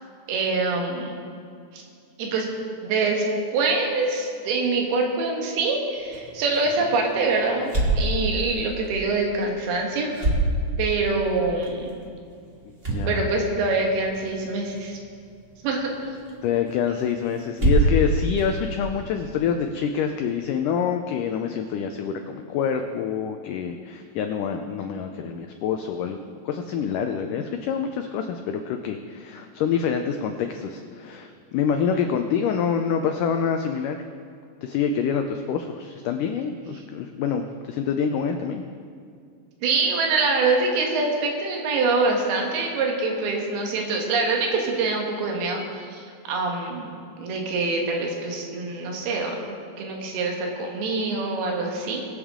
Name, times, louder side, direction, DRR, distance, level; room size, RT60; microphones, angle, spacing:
voice 1, 0.3-1.1 1.7-1.8 2.2-2.5 2.8-3.3 3.5-10.3 10.8-12.0 13.1-15.0 15.6-15.9 31.9-32.0 39.6-49.4 49.8-52.0, right 3 dB, 80° right, 1 dB, 3.4 m, -25 dB
sound 1, 5.9-19.5, right 1 dB, 35° right, 1.0 m, -29 dB
voice 2, 12.9-13.3 16.4-26.2 26.5-34.0 34.6-38.6, left 7 dB, 90° left, 6 dB, 1.8 m, -26 dB
22.0 x 8.1 x 3.7 m, 2.3 s
omnidirectional pair, 4.5 m